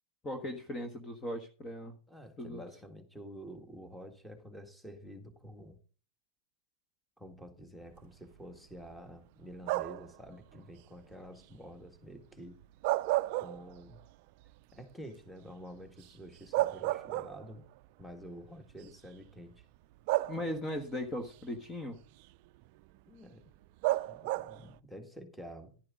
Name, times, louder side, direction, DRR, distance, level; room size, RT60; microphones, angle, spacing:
voice 1, 0.2-2.0 2.4-2.6 20.3-22.0, left 1 dB, 20° left, 1.4 m, -38 dB
voice 2, 2.1-5.8 7.2-12.6 13.4-14.0 14.7-17.6 18.0-19.7 20.4-20.5 23.1-23.5 24.0-25.7, equal, ahead, 1.9 m, -49 dB
sound 1, 9.6-10.2 12.6-14.0 14.4-14.5 16.1-16.2 16.5-17.7 18.7-18.8 20.1-20.8 23.8-24.7, right 18 dB, 50° right, 0.5 m, -32 dB
10.5 x 10.5 x 3.7 m
hypercardioid pair, 120°, 0 cm